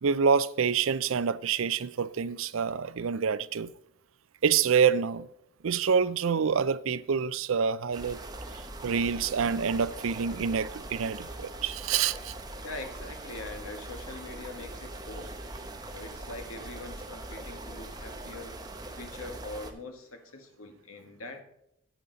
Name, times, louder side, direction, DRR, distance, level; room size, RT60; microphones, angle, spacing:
voice 1, 0.0-3.7 4.4-5.3 5.6-8.2 8.8-12.3, right 6 dB, 75° right, 0.5 m, -27 dB
sound 1, 7.9-19.7, right 2 dB, 20° right, 0.9 m, -42 dB
voice 2, 12.6-15.4 15.9-18.6 18.9-21.4, left 2 dB, 85° left, 1.7 m, -43 dB
9.0 x 8.5 x 4.0 m
head